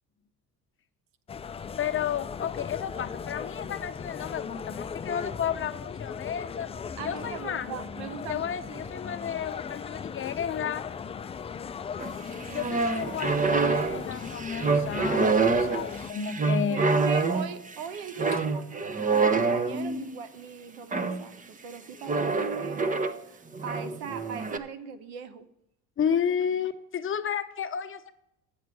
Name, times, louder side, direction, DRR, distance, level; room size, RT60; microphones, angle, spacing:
sound 1, 1.3-16.1, left 6 dB, 20° left, 0.3 m, -38 dB
voice 1, 1.8-6.7 7.0-7.7 8.3-10.8 12.5-16.9 18.3-18.4 26.0-28.1, left 8 dB, 35° left, 8 dB, 0.9 m, -32 dB
voice 2, 7.0-8.9 16.7-18.7 19.1-23.0 23.3-25.5, right 7 dB, 90° right, 11 dB, 1.0 m, -40 dB
sound 2, 12.0-20.1 20.9-21.3 22.1-23.2 23.5-24.6, right 4 dB, 20° right, 0.7 m, -26 dB
8.3 x 7.2 x 6.1 m, 0.83 s
supercardioid pair, 95°, 36 cm